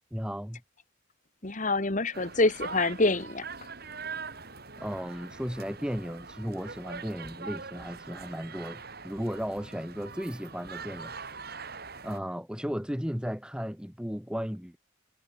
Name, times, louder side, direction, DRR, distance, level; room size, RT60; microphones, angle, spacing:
voice 1, 0.1-0.6 4.8-11.1 12.0-14.8, equal, 5° right, 5.5 m, -35 dB
voice 2, 1.4-3.4, left 2 dB, 40° left, 1.6 m, -26 dB
sound 1, 2.1-12.2, right 5 dB, 50° right, 7.0 m, -43 dB
head